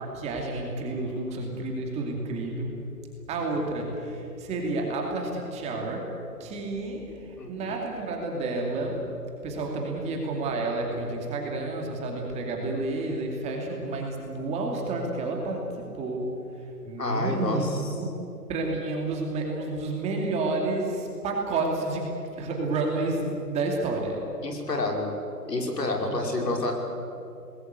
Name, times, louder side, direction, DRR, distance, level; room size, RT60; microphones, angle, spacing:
voice 1, 0.0-2.7 3.3-6.1 6.4-9.0 9.4-16.3 16.8-18.1 18.5-22.1 22.4-24.3 26.0-26.6, right 2 dB, 15° right, 1 dB, 2.6 m, -30 dB
voice 2, 7.4-7.7 17.0-17.8 24.4-25.1 25.5-26.7, left 2 dB, 75° left, 2 dB, 5.6 m, -29 dB
27.0 x 20.5 x 8.2 m, 2.7 s
hypercardioid pair, 150°, 49 cm